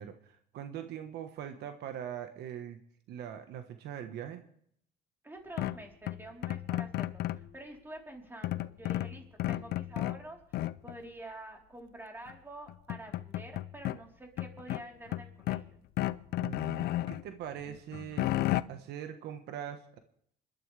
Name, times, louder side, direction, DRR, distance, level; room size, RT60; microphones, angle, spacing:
voice 1, 0.0-2.8 3.1-4.4 16.4-18.3 18.7-20.0, right 9 dB, 75° right, 7 dB, 1.3 m, -42 dB
voice 2, 5.2-10.4 10.8-15.8, right 1 dB, 10° right, 1 dB, 3.8 m, -48 dB
sound 1, 5.6-7.5 8.4-10.2 10.5-11.0 12.3-12.4 12.7-14.0 14.4-15.7 16.0-17.2 17.7-18.6, left 15 dB, 70° left, 0.6 m, -33 dB
27.0 x 12.0 x 3.4 m, 0.69 s
cardioid pair, 110°, 17 cm